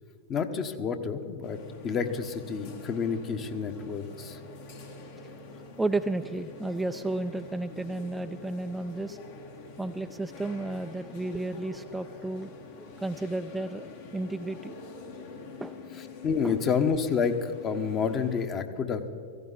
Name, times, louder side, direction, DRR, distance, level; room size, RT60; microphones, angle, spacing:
voice 1, 0.3-1.6 1.8-4.4 16.2-19.1, left 6 dB, 35° left, 7 dB, 1.3 m, -29 dB
sound 1, 1.4-18.5, left 3 dB, 65° left, 3.1 m, -45 dB
voice 2, 5.8-9.2 9.8-12.5 12.8-14.8 15.6-15.8 16.4-16.5, right 2 dB, 5° right, 7 dB, 0.4 m, -33 dB
17.5 x 15.5 x 4.2 m, 2.7 s
hypercardioid pair, 100°, 0 cm